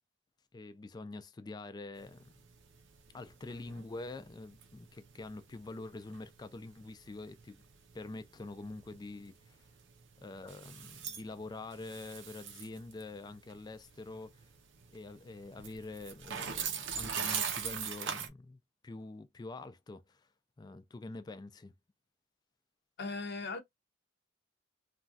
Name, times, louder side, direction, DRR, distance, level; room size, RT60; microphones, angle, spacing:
voice 1, 0.5-2.2 3.1-7.6 7.9-9.7 10.2-14.4 14.9-20.2 20.6-21.7, left 2 dB, 20° left, 0.3 m, -46 dB
sound 1, 2.0-18.3, right 7 dB, 65° right, 0.6 m, -42 dB
voice 2, 23.0-23.6, left 3 dB, 60° left, 0.6 m, -38 dB
3.0 x 2.3 x 2.6 m
head